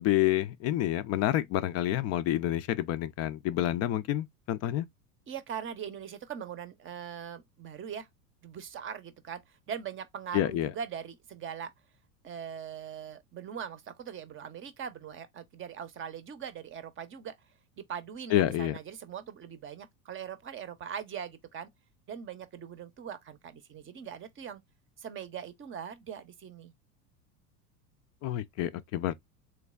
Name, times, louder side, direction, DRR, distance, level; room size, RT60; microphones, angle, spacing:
voice 1, 0.0-4.9 10.3-10.7 18.3-18.8 28.2-29.1, left 13 dB, 35° left, 0.4 m, -28 dB
voice 2, 5.3-8.1 8.4-9.4 9.7-11.7 12.2-17.3 17.8-21.7 22.1-24.6 25.0-26.7, right 8 dB, 25° right, 0.7 m, -41 dB
3.4 x 3.2 x 2.3 m
hypercardioid pair, 100°, 46 cm